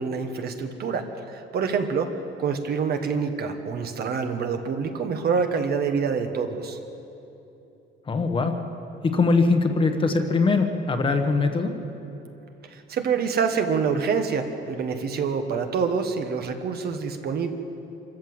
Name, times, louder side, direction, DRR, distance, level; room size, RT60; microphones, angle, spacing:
voice 1, 0.0-2.1 2.4-6.8 12.7-17.5, right 5 dB, 50° right, 6 dB, 1.5 m, -26 dB
voice 2, 8.1-8.6 9.0-11.7, left 3 dB, 25° left, 5 dB, 1.3 m, -22 dB
26.5 x 14.0 x 7.9 m, 2.9 s
cardioid pair, 175°, 21 cm